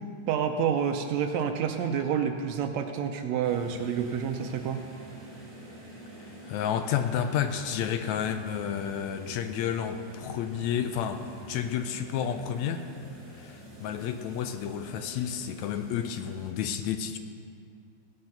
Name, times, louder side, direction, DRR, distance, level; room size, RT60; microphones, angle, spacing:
voice 1, 0.3-4.8, right 7 dB, 75° right, 6 dB, 1.7 m, -28 dB
sound 1, 3.4-16.5, right 1 dB, 45° right, 3.6 m, -46 dB
voice 2, 6.4-12.8 13.4-17.2, left 9 dB, 80° left, 8 dB, 1.8 m, -31 dB
17.0 x 6.5 x 5.8 m, 2.3 s
omnidirectional pair, 3.4 m